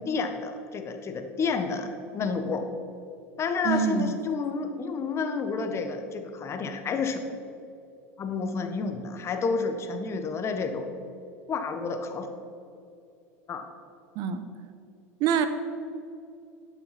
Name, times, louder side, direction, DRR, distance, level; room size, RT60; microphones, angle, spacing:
voice 1, 0.0-1.9 2.1-2.7 3.4-7.2 8.2-10.8 11.5-12.3 13.5-13.7, left 4 dB, 35° left, 7 dB, 1.2 m, -30 dB
voice 2, 3.6-4.1 14.1-14.4 15.2-15.5, right 7 dB, 55° right, 10 dB, 0.8 m, -25 dB
12.0 x 5.6 x 5.9 m, 2.6 s
hypercardioid pair, 90°, 8 cm